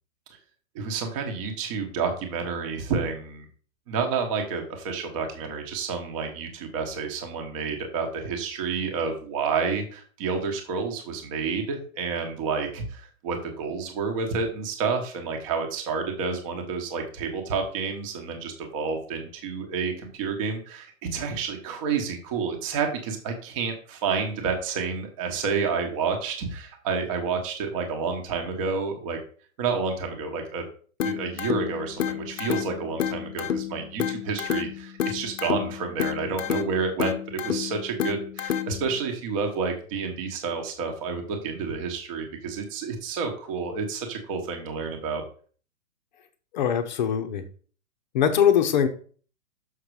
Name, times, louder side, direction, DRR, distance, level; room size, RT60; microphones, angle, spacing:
voice 1, 0.7-3.4 3.9-29.2 29.6-30.6 31.0-45.2, right 5 dB, 25° right, 4 dB, 1.2 m, -29 dB
sound 1, 31.0-39.0, left 9 dB, 65° left, 0.9 m, -30 dB
voice 2, 46.5-47.4 48.1-48.9, left 8 dB, 35° left, 8 dB, 0.9 m, -21 dB
6.4 x 5.8 x 4.8 m, 0.43 s
hypercardioid pair, 165°, 41 cm